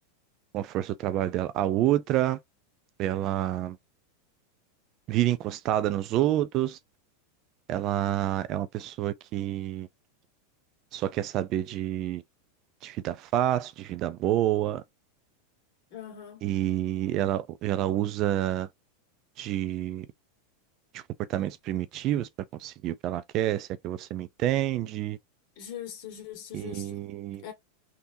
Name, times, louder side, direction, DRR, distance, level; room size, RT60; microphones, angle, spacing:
voice 1, 0.5-2.4 3.0-3.8 5.1-6.8 7.7-9.9 10.9-12.2 12.8-14.8 16.4-18.7 19.4-20.1 20.9-21.0 21.3-22.3 22.6-25.2 26.5-27.4, right 13 dB, 40° right, 0.3 m, -28 dB
voice 2, 15.9-16.4 25.6-27.0 27.4-27.5, left 9 dB, 50° left, 1.8 m, -41 dB
3.5 x 2.8 x 2.6 m
supercardioid pair, 150°, 0 cm